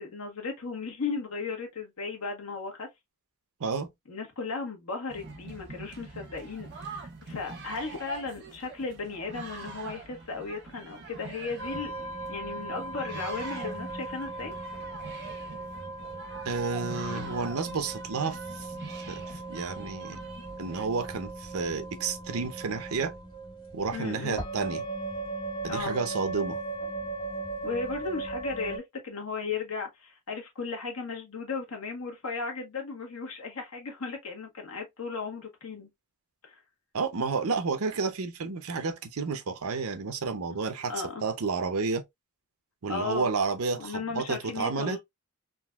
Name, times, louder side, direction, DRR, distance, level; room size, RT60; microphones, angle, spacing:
voice 1, 0.0-2.9 4.1-14.5 17.1-17.3 23.9-24.4 25.7-26.0 27.6-35.9 36.4-36.6 40.9-41.2 42.9-43.3 43.8-45.0, left 4 dB, 75° left, 1.3 m, -36 dB
sound 1, 5.1-20.9, right 3 dB, 50° right, 1.2 m, -44 dB
sound 2, 11.6-28.8, right 2 dB, 20° left, 1.5 m, -38 dB
voice 2, 16.4-18.7 18.9-20.2 20.6-23.1 23.7-24.8 25.6-26.6 36.9-40.9 41.2-42.0 42.8-45.0, right 4 dB, 75° right, 0.7 m, -31 dB
3.8 x 2.6 x 2.3 m
head